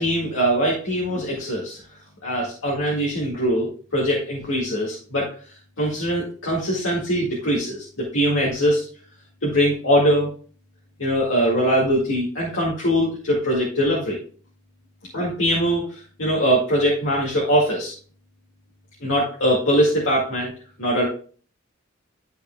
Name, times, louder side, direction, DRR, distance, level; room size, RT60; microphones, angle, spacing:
voice 1, 0.0-1.8 2.2-5.3 5.8-8.9 9.4-10.3 11.0-14.2 15.1-17.9 19.0-20.5 20.8-21.1, equal, 75° left, -4 dB, 2.0 m, -22 dB
11.5 x 5.5 x 2.2 m, 0.41 s
head